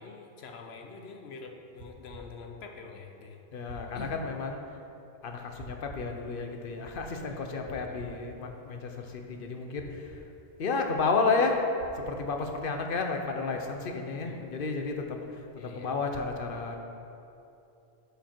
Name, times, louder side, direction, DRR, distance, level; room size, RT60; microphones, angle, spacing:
voice 1, 0.0-3.4 3.9-4.1 7.3-7.5 7.8-8.1 14.2-14.5 15.6-15.9, left 4 dB, 85° left, 3 dB, 1.1 m, -45 dB
sound 1, 1.8-2.3 3.7-4.1 5.6-6.1 7.7-8.2 9.8-10.3 11.8-12.3, right 3 dB, 80° right, 1.0 m, -47 dB
voice 2, 3.5-4.6 5.2-10.2 10.6-11.6 12.0-15.2 15.5-16.8, left 4 dB, 65° left, 3 dB, 0.9 m, -31 dB
10.0 x 5.1 x 4.4 m, 2.8 s
omnidirectional pair, 1.0 m